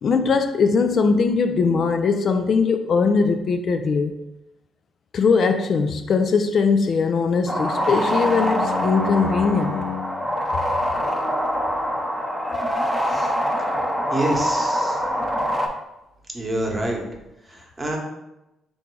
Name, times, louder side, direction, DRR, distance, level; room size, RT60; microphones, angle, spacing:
voice 1, 0.0-4.2 5.1-9.8, left 5 dB, 55° left, 7 dB, 0.3 m, -20 dB
Bowed string instrument, 7.1-10.3, left 8 dB, 75° left, 0.9 m, -31 dB
sound 1, 7.5-15.7, equal, 5° left, 0.7 m, -24 dB
voice 2, 14.1-15.0 16.3-17.0 17.5-18.0, right 1 dB, 20° right, 0 dB, 1.0 m, -27 dB
3.5 x 2.6 x 4.5 m, 0.92 s
cardioid pair, 90°, 0 cm